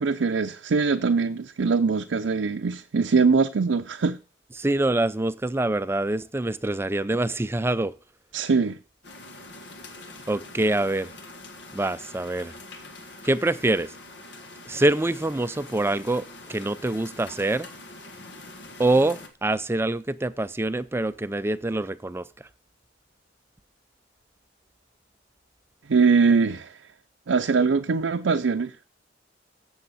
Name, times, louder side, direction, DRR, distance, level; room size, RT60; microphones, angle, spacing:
voice 1, 0.0-4.2 8.3-8.8 25.9-26.8 27.3-28.7, right 4 dB, 75° right, 0.5 m, -22 dB
voice 2, 4.6-7.9 10.3-11.1 11.7-12.5 13.2-13.9 14.7-17.7 18.8-22.2, right 2 dB, 15° right, 0.4 m, -25 dB
sound 1, 9.0-19.3, left 2 dB, 65° left, 1.7 m, -44 dB
15.0 x 7.2 x 4.1 m
head